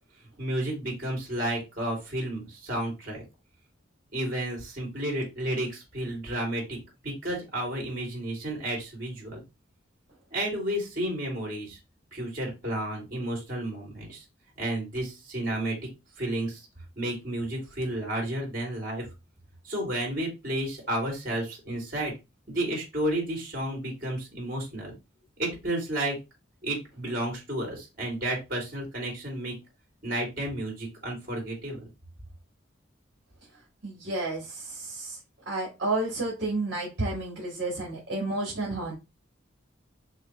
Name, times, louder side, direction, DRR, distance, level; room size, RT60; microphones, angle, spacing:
voice 1, 0.4-3.2 4.1-6.8 7.0-9.4 10.3-11.8 12.1-14.2 14.6-15.8 16.2-16.6 17.0-19.0 19.7-22.1 22.5-24.9 25.4-26.2 26.6-29.5 30.0-31.8, right 1 dB, 50° right, -1 dB, 2.7 m, -31 dB
voice 2, 33.8-35.2 35.4-38.9, right 2 dB, 65° right, -3 dB, 1.7 m, -31 dB
6.4 x 2.3 x 3.1 m, 0.25 s
head